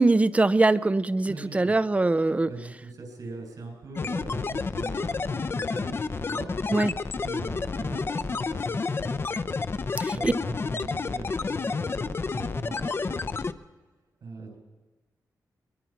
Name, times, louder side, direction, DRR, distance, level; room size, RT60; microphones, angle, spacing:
voice 1, 0.0-2.5 6.7-6.9 10.0-10.3, right 2 dB, 20° right, 16 dB, 0.6 m, -22 dB
voice 2, 1.3-1.8 2.5-6.5 7.2-9.5 10.1-13.3 14.2-14.6, right 3 dB, 70° right, 2 dB, 7.4 m, -41 dB
sound 1, 4.0-13.5, left 4 dB, 40° left, 0.7 m, -30 dB
22.5 x 22.0 x 5.9 m, 1.3 s
wide cardioid pair, 150°, 7 cm